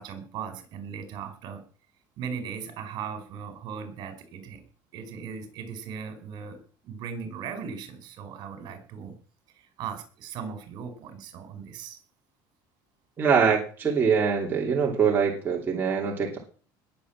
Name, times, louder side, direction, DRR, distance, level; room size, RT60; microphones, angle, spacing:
voice 1, 0.0-1.6 2.2-4.6 4.9-6.6 6.8-9.1 9.6-12.0, right 6 dB, 50° right, 8 dB, 4.9 m, -38 dB
voice 2, 13.2-16.4, right 6 dB, 25° right, -2 dB, 2.9 m, -23 dB
20.0 x 7.9 x 7.5 m, 0.41 s
cardioid pair, 150°, 9 cm